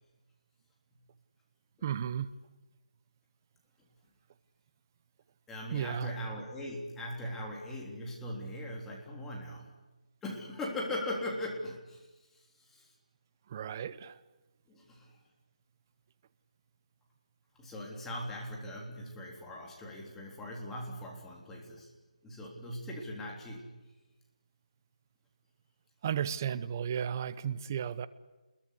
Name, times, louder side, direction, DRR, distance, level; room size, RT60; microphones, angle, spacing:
voice 1, 1.8-2.3 5.7-6.1 13.5-14.2 26.0-28.1, right 9 dB, 25° right, 15 dB, 0.9 m, -34 dB
voice 2, 5.5-9.7 10.2-12.1 12.6-12.9 14.7-15.1 17.6-21.9 22.2-23.8, left 1 dB, 5° left, -1 dB, 3.6 m, -40 dB
30.0 x 22.0 x 8.4 m, 1.1 s
figure-of-eight pair, 165°, 4 cm